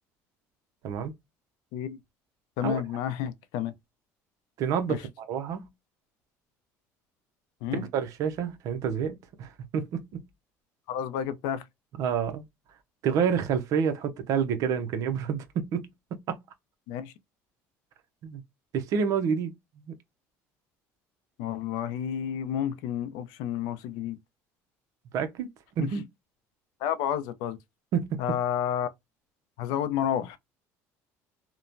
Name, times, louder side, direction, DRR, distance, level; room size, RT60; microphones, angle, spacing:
voice 1, 2.6-3.7 4.9-5.0 7.6-7.8 10.9-11.6 16.9-17.1 21.4-24.2 25.8-25.9 26.8-27.6 28.2-28.9 29.6-30.4, left 9 dB, 80° left, 0.5 m, -30 dB
voice 2, 4.6-5.7 7.7-10.2 12.0-12.4 13.0-16.4 18.2-18.4 18.7-19.9 25.1-26.0 27.9-28.2, right 7 dB, 60° right, 0.6 m, -29 dB
3.0 x 2.1 x 2.5 m
cardioid pair, 125°, 7 cm